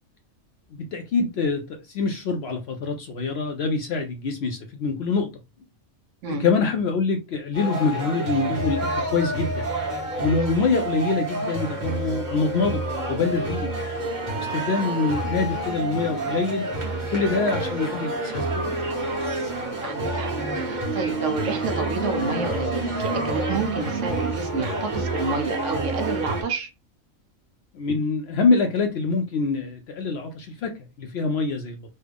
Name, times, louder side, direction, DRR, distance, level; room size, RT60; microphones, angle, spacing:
voice 1, 0.7-5.3 6.3-9.7 10.2-13.7 14.4-16.7 17.1-18.7 27.7-31.8, left 4 dB, 65° left, 0.7 m, -25 dB
sound 1, 7.5-26.4, right 2 dB, 35° right, 1.2 m, -28 dB
voice 2, 19.8-26.7, right 4 dB, 65° right, 1.0 m, -30 dB
3.3 x 2.2 x 3.4 m
omnidirectional pair, 1.4 m